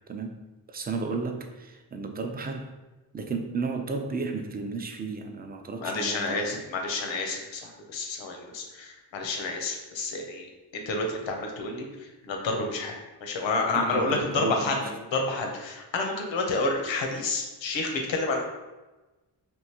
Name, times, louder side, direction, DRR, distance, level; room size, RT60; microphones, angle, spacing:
voice 1, 0.1-0.4 0.7-2.8 3.1-6.6 13.7-14.9, right 4 dB, 25° right, 5 dB, 0.3 m, -33 dB
voice 2, 5.8-10.5 10.7-11.9 12.2-13.0 13.2-14.8 15.1-18.4, left 3 dB, 90° left, 2 dB, 0.7 m, -29 dB
3.5 x 2.6 x 2.8 m, 1.1 s
cardioid pair, 75°, 44 cm